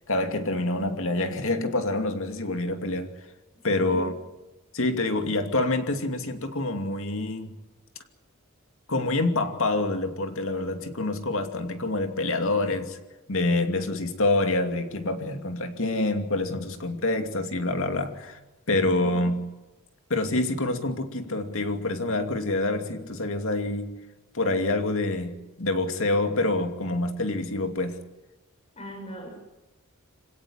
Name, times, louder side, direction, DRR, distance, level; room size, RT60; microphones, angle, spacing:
voice 1, 0.1-3.1 3.6-4.1 4.7-7.6 8.9-13.0 13.3-18.4 18.7-19.5 20.1-23.9 24.3-28.0, left 2 dB, 65° left, 7 dB, 2.6 m, -26 dB
voice 2, 28.7-29.4, equal, 30° left, 3 dB, 6.1 m, -40 dB
26.5 x 17.5 x 10.0 m, 1.1 s
head